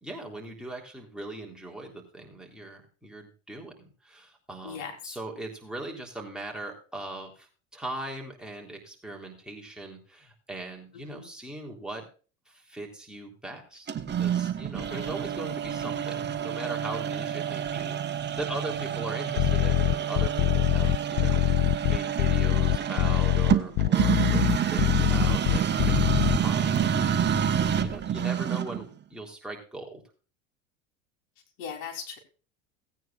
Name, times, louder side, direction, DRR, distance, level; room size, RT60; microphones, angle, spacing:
voice 1, 0.0-3.7 4.0-12.0 12.5-21.4 21.9-27.2 27.8-30.0, right 2 dB, ahead, 0 dB, 3.6 m, -40 dB
voice 2, 4.6-5.0 10.9-11.3 14.8-15.1 20.8-21.0 23.7-24.1 31.6-32.2, left 7 dB, 60° left, 3 dB, 3.7 m, -40 dB
sound 1, 13.9-28.9, right 9 dB, 30° right, 1.4 m, -28 dB
sound 2, 19.4-26.4, left 17 dB, 45° left, 0.4 m, -23 dB
18.0 x 9.3 x 2.5 m, 0.37 s
hypercardioid pair, 95°, 38 cm